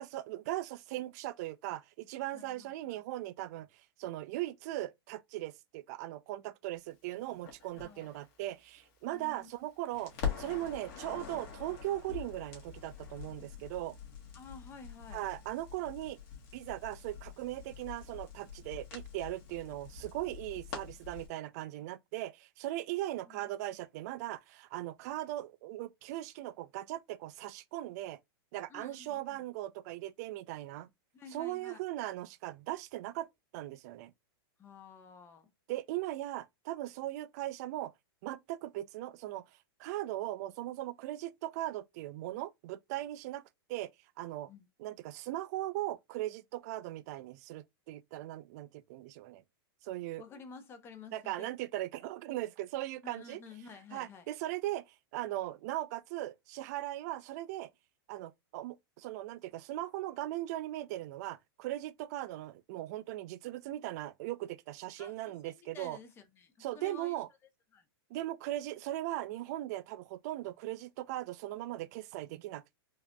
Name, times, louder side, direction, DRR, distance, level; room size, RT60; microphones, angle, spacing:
voice 1, 0.0-3.7 4.0-14.0 15.1-16.2 16.5-28.2 28.5-30.9 31.3-33.3 33.5-34.1 35.7-37.9 38.2-39.4 39.8-43.4 43.7-43.9 44.2-44.5 44.8-49.4 49.8-50.2 51.1-53.4 53.9-57.7 58.1-66.0 66.6-67.3 68.1-72.8, right 15 dB, 40° right, 0.4 m, -39 dB
voice 2, 2.3-3.0 7.8-8.1 9.1-9.5 14.3-15.2 23.2-23.8 28.7-29.4 31.1-31.8 34.6-35.5 44.5-44.7 50.2-51.5 53.0-54.3 65.0-67.2 67.7-67.8, left 4 dB, 20° left, 0.6 m, -52 dB
Crackle, 7.5-9.6 9.9-21.3, left 7 dB, 45° left, 1.5 m, -44 dB
4.6 x 2.8 x 2.2 m
supercardioid pair, 155°, 13 cm